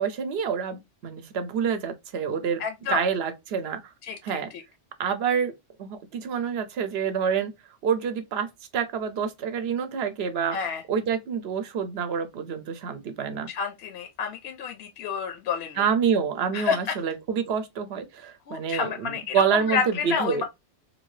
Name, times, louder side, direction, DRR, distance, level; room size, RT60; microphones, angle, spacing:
voice 1, 0.0-2.6 2.9-3.9 4.2-4.5 5.0-5.5 5.8-7.5 7.8-8.5 8.7-13.5 15.8-20.4, right 7 dB, 65° right, 0.8 m, -27 dB
voice 2, 2.6-3.0 4.0-4.2 4.5-4.6 10.5-10.8 13.5-15.8 16.5-16.9 18.5-20.4, left 6 dB, 65° left, 0.8 m, -29 dB
2.7 x 2.6 x 3.1 m
omnidirectional pair, 1.2 m